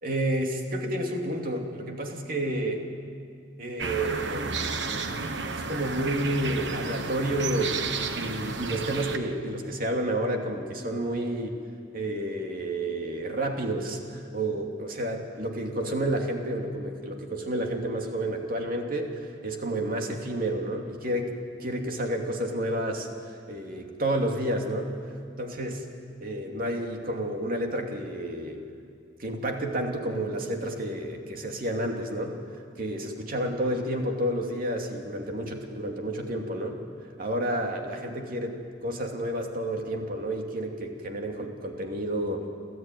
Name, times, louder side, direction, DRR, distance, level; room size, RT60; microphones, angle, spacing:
voice 1, 0.0-2.8 3.6-7.8 8.1-11.6 11.9-21.3 21.6-23.1 23.5-24.9 25.4-25.8 26.2-28.6 29.2-32.4 32.8-36.8 37.2-42.5, right 1 dB, 50° right, 2 dB, 2.6 m, -30 dB
sound 1, 3.8-9.2, right 4 dB, 75° right, 1.3 m, -32 dB
28.5 x 14.0 x 9.3 m, 2.3 s
head